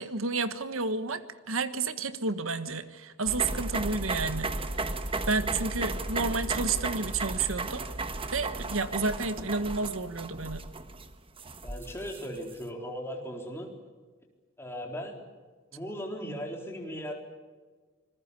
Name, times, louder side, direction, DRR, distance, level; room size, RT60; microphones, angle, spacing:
voice 1, 0.0-4.5 5.3-7.9 8.3-10.6, right 4 dB, 75° right, 11 dB, 1.5 m, -31 dB
sound 1, 3.3-12.5, right 2 dB, 25° right, 1.3 m, -34 dB
voice 2, 11.6-13.7 14.6-15.2 15.7-17.1, equal, 10° left, 1 dB, 4.2 m, -37 dB
26.5 x 21.0 x 8.3 m, 1.4 s
head